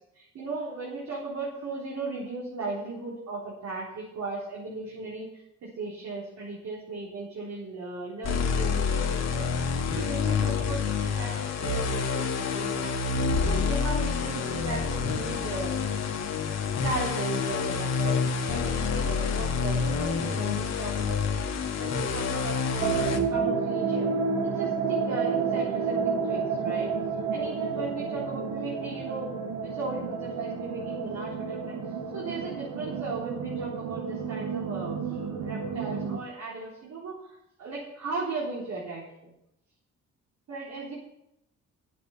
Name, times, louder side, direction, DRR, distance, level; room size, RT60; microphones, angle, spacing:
voice 1, 0.1-5.4 5.8-9.5 10.0-13.1 13.4-15.7 16.8-21.5 21.8-24.1 24.4-26.9 27.3-31.8 32.1-39.3 40.5-40.9, right 3 dB, 65° right, -6 dB, 3.9 m, -37 dB
sound 1, 8.2-23.2, left 5 dB, 60° left, 1.8 m, -28 dB
sound 2, 22.8-36.2, right 5 dB, 85° right, 1.5 m, -30 dB
9.4 x 8.3 x 7.1 m, 0.82 s
cardioid pair, 90°, 30 cm